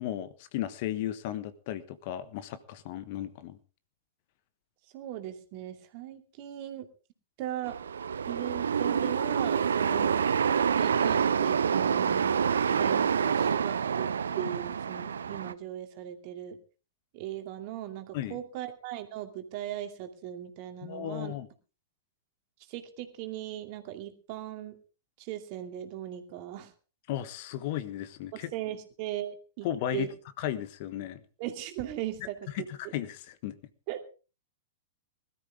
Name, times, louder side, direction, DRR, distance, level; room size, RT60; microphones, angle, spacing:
voice 1, 0.0-3.6 18.1-18.4 20.8-21.5 27.1-28.5 29.6-30.1 30.4-31.2 32.5-33.6, left 12 dB, 50° left, 14 dB, 1.3 m, -35 dB
voice 2, 4.9-6.9 7.4-7.8 8.3-10.3 10.7-16.6 17.1-21.3 22.7-24.7 25.2-26.7 28.5-29.7 29.9-30.1 31.4-32.9 33.9-34.0, right 12 dB, 45° right, 6 dB, 2.5 m, -38 dB
sound 1, 7.6-15.5, right 7 dB, 75° right, 0.7 m, -27 dB
20.0 x 13.5 x 3.6 m, 0.34 s
figure-of-eight pair, 105°, 0 cm